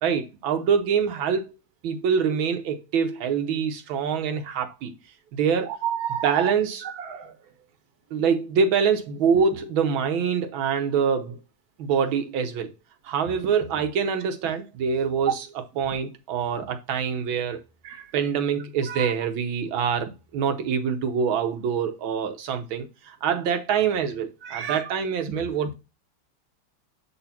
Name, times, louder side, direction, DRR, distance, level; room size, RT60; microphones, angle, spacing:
voice 1, 0.0-1.5 1.8-4.9 5.3-5.7 6.2-6.8 8.1-11.4 11.8-12.7 13.0-15.5 15.8-17.6 18.1-25.7, right 6 dB, 80° right, 1.7 m, -25 dB
voice 2, 5.7-6.5 6.8-7.3 17.8-18.0 18.9-19.1 24.4-24.8, right 9 dB, 55° right, 1.5 m, -31 dB
7.7 x 4.1 x 5.7 m
omnidirectional pair, 2.2 m